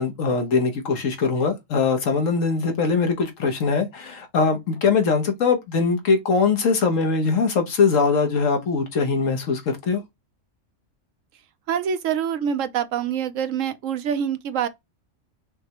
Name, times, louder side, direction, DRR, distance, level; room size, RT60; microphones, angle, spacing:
voice 1, 0.0-10.0, left 4 dB, 75° left, 1.3 m, -21 dB
voice 2, 11.7-14.7, right 8 dB, 75° right, 1.0 m, -25 dB
5.7 x 2.2 x 2.9 m
omnidirectional pair, 1.4 m